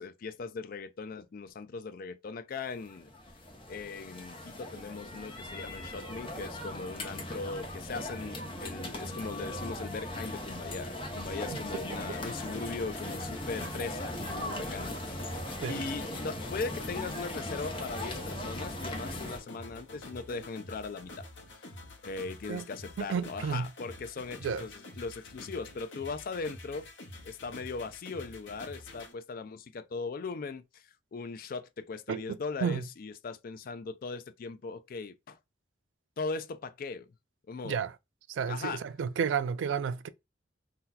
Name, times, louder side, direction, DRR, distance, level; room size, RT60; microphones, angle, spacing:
voice 1, 0.0-3.1 3.7-21.7 22.0-26.9 27.2-35.4 36.2-37.1 37.5-37.8 38.5-38.8, left 4 dB, 45° left, 0.4 m, -39 dB
sound 1, 2.8-19.4, left 1 dB, 30° left, 0.7 m, -39 dB
sound 2, 12.0-29.1, left 2 dB, 65° left, 0.9 m, -48 dB
voice 2, 23.0-23.7 24.4-24.6 32.1-32.9 37.6-37.9 38.3-40.1, right 6 dB, 70° right, 0.3 m, -32 dB
2.8 x 2.2 x 3.7 m
head